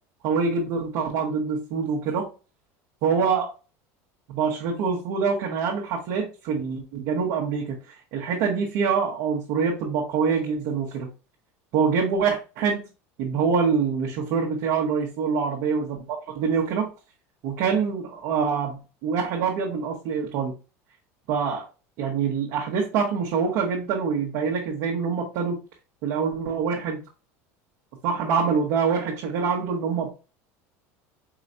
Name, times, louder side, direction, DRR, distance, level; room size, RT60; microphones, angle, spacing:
voice 1, 0.2-2.3 3.0-3.5 4.3-11.1 11.7-12.8 13.2-16.9 17.4-18.8 19.0-20.5 21.3-21.7 22.0-25.6 26.0-27.0 28.0-30.1, right 6 dB, 65° right, -4 dB, 1.2 m, -25 dB
4.8 x 3.0 x 2.6 m, 0.31 s
supercardioid pair, 110°, 8 cm